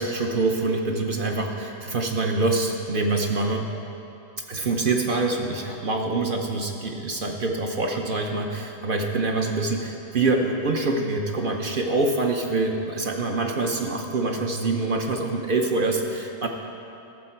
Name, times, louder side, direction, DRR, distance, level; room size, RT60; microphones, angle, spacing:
voice 1, 0.0-3.7 4.5-16.5, right 3 dB, 50° right, 2 dB, 0.7 m, -25 dB
13.0 x 7.5 x 4.4 m, 2.8 s
omnidirectional pair, 1.4 m